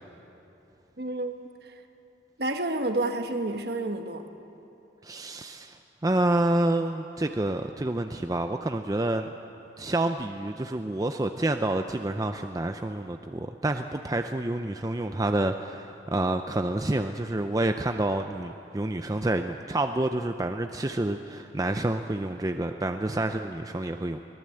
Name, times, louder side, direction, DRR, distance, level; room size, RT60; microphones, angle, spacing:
voice 1, 1.0-1.3 2.4-4.3, right 2 dB, 55° right, 6 dB, 1.4 m, -29 dB
voice 2, 5.0-5.8 6.0-9.3 9.8-24.2, right 1 dB, 20° right, 6 dB, 0.5 m, -28 dB
24.5 x 18.0 x 7.7 m, 3.0 s
head